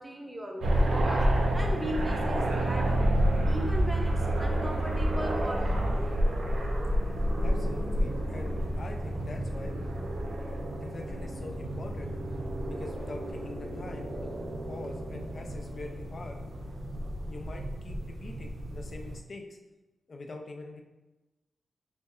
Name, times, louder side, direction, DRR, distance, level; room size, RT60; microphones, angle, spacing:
voice 1, 0.0-3.1 3.4-6.1, right 1 dB, 15° right, 1 dB, 0.6 m, -38 dB
sound 1, 0.6-19.2, right 1 dB, 80° right, 0.5 m, -30 dB
voice 2, 7.4-9.7 10.7-12.2 12.7-16.4 17.3-19.6 20.1-20.8, left 2 dB, 55° left, 2 dB, 0.4 m, -44 dB
5.5 x 2.1 x 2.4 m, 1.1 s
cardioid pair, 85°, 0 cm